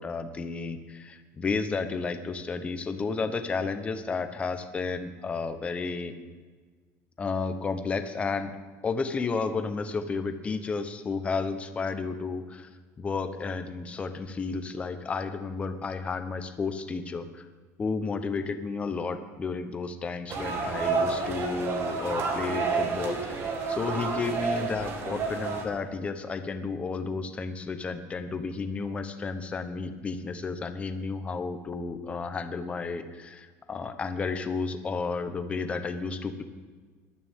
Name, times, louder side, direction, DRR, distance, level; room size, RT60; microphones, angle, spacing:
voice 1, 0.0-6.1 7.2-8.5 8.8-12.7 13.0-17.4 17.8-36.4, left 4 dB, 20° left, 8 dB, 1.0 m, -32 dB
sound 1, 20.3-25.6, right 4 dB, 40° right, 1.9 m, -30 dB
19.5 x 12.5 x 3.7 m, 1.4 s
cardioid pair, 160°, 7 cm